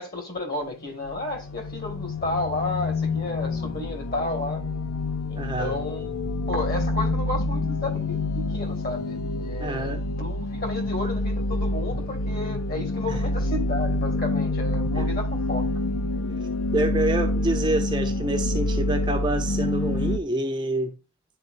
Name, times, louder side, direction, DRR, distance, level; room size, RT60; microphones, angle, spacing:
voice 1, 0.0-4.6 5.3-6.1 6.5-15.7, left 2 dB, 45° left, 2.0 m, -32 dB
sound 1, 0.7-20.2, left 2 dB, 75° left, 0.6 m, -27 dB
voice 2, 5.4-5.8 9.6-10.0 13.1-13.2 14.9-15.1 16.7-20.9, right 1 dB, 20° right, 0.7 m, -27 dB
11.0 x 4.2 x 2.6 m
head